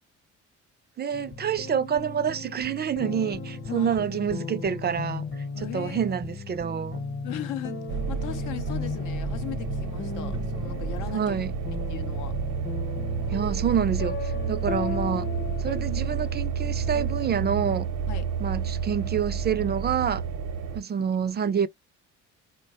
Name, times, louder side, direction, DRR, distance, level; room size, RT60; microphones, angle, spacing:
voice 1, 1.0-5.3 5.6-7.0 11.1-11.5 13.3-15.3 15.6-17.9 18.4-20.2 20.7-21.7, right 8 dB, 35° right, 0.4 m, -27 dB
sound 1, 1.1-17.8, left 4 dB, 40° left, 0.9 m, -36 dB
voice 2, 3.7-4.0 5.5-6.0 7.2-11.4 11.9-12.3 15.1-15.4 18.1-18.3 21.0-21.1 21.4-21.6, left 12 dB, 85° left, 0.7 m, -38 dB
sound 2, 7.9-20.8, right 6 dB, 70° right, 0.7 m, -31 dB
3.9 x 2.1 x 2.8 m
cardioid pair, 90°, 30 cm